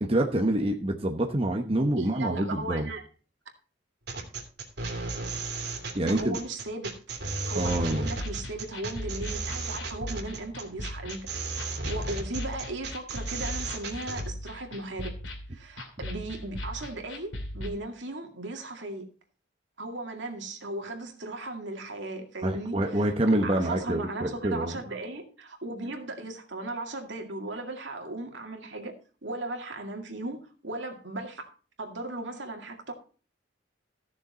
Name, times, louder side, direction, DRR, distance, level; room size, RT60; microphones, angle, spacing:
voice 1, 0.0-2.9 5.9-6.4 7.6-8.1 22.4-24.8, right 1 dB, 30° right, 1.0 m, -26 dB
voice 2, 2.0-3.0 6.0-7.2 7.5-11.3 11.9-15.2 15.5-19.1 19.8-23.1 23.4-28.9 29.2-31.5 31.8-32.9, right 2 dB, 75° right, 2.2 m, -37 dB
sound 1, 4.1-14.3, right 3 dB, 60° right, 2.7 m, -34 dB
sound 2, 7.6-17.7, left 1 dB, 75° left, 2.7 m, -39 dB
14.5 x 6.6 x 4.2 m
head